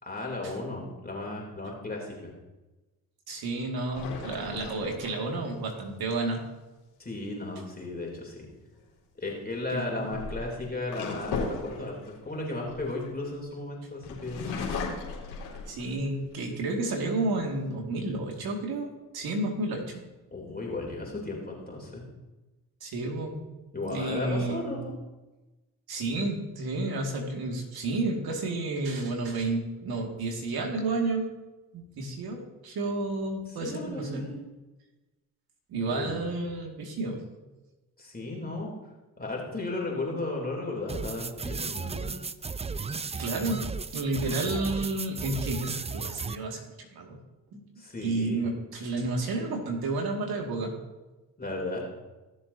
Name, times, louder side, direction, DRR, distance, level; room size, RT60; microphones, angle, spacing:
voice 1, 0.0-2.3 7.0-8.5 9.1-12.0 12.2-14.5 20.3-22.0 23.7-24.9 33.5-34.3 35.9-36.2 38.0-38.7 39.2-42.1 47.8-48.5 51.4-51.8, left 2 dB, 25° left, -2 dB, 3.2 m, -35 dB
voice 2, 3.3-6.4 9.7-10.1 15.7-20.0 22.8-23.5 23.8-24.8 25.9-31.3 31.7-34.3 35.7-37.2 43.2-43.7 43.9-47.2 47.5-47.7 48.0-50.7, right 2 dB, 70° right, 1 dB, 2.2 m, -31 dB
sound 1, 3.9-5.5 8.5-8.8 9.8-13.5 14.0-16.2 16.7-16.8 17.1-17.7, left 4 dB, 80° left, 2.5 m, -37 dB
sound 2, 40.9-46.4, right 4 dB, 15° right, 0.4 m, -34 dB
16.5 x 7.2 x 2.8 m, 1.1 s
hypercardioid pair, 45°, 38 cm